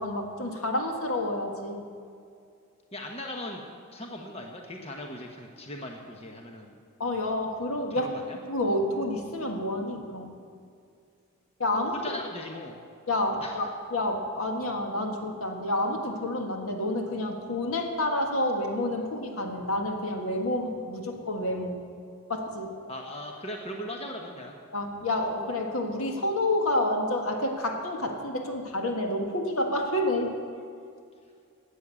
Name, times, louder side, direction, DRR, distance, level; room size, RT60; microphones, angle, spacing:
voice 1, 0.0-1.9 7.0-8.1 8.5-10.3 11.6-11.9 13.1-21.8 22.3-22.7 24.7-30.3, left 1 dB, 75° left, 2 dB, 1.7 m, -29 dB
voice 2, 2.9-3.6 3.9-6.7 7.9-8.4 11.7-12.8 13.4-13.7 22.9-24.6, left 1 dB, 25° left, 2 dB, 1.1 m, -39 dB
12.5 x 8.4 x 8.4 m, 2.3 s
head